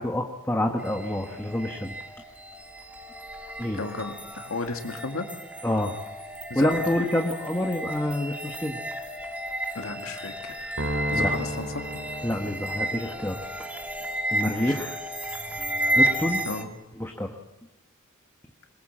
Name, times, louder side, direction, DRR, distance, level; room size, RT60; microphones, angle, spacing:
voice 1, 0.0-1.9 3.6-3.8 5.6-6.0 6.5-8.8 11.1-11.3 12.2-13.4 14.3-15.0 15.9-16.4 17.0-17.3, left 1 dB, 10° left, 2 dB, 1.4 m, -27 dB
sound 1, 0.8-16.6, right 1 dB, 5° right, 2.0 m, -32 dB
voice 2, 3.7-5.3 6.5-6.8 9.7-10.7 11.1-12.0 14.4-14.7 16.5-16.7, left 3 dB, 85° left, 4 dB, 2.2 m, -34 dB
sound 2, 10.8-13.2, equal, 90° right, 3.5 m, -32 dB
22.5 x 21.5 x 7.5 m, 1.0 s
head